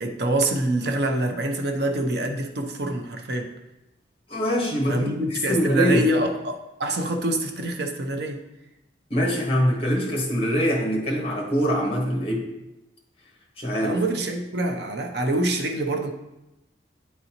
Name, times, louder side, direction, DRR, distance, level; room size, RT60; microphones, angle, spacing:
voice 1, 0.0-3.5 4.9-8.4 13.8-16.1, right 1 dB, 55° right, 3 dB, 0.6 m, -25 dB
voice 2, 4.3-5.1 5.5-6.1 9.1-12.5 13.6-14.0, equal, 30° left, -1 dB, 1.1 m, -23 dB
9.3 x 3.9 x 2.9 m, 0.96 s
head